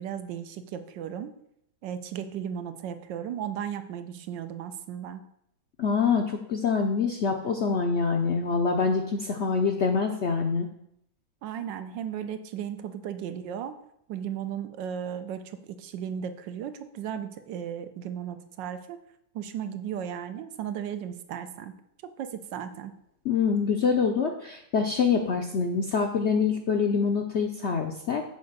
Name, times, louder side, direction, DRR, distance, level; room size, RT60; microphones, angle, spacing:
voice 1, 0.0-1.3 1.8-5.2 11.4-13.7 14.1-19.0 19.3-21.7 22.0-22.9, right 9 dB, 85° right, 9 dB, 1.4 m, -35 dB
voice 2, 5.8-10.7 23.2-28.2, left 5 dB, 70° left, 3 dB, 0.6 m, -25 dB
6.9 x 4.7 x 6.6 m, 0.75 s
omnidirectional pair, 1.9 m